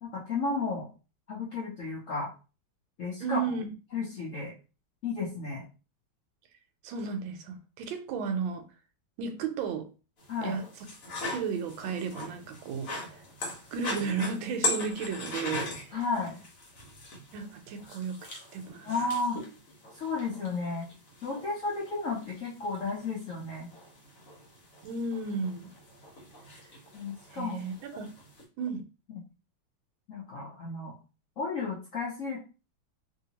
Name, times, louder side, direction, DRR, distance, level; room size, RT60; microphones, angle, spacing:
voice 1, 0.0-0.9 1.3-2.3 3.0-3.6 3.9-4.5 5.0-5.6 10.3-10.6 15.9-16.4 18.8-19.4 19.9-20.9 21.2-23.7 26.9-27.6 30.1-30.9 31.4-32.4, left 3 dB, 70° left, 0.7 m, -33 dB
voice 2, 3.2-3.7 6.8-8.6 9.2-9.9 10.4-10.7 11.2-13.2 13.7-16.0 17.3-18.9 24.8-25.7 27.3-28.1 28.6-28.8, right 5 dB, 80° right, 1.4 m, -34 dB
sound 1, 10.2-28.4, left 2 dB, 50° left, 1.2 m, -40 dB
3.1 x 2.7 x 2.8 m
omnidirectional pair, 2.2 m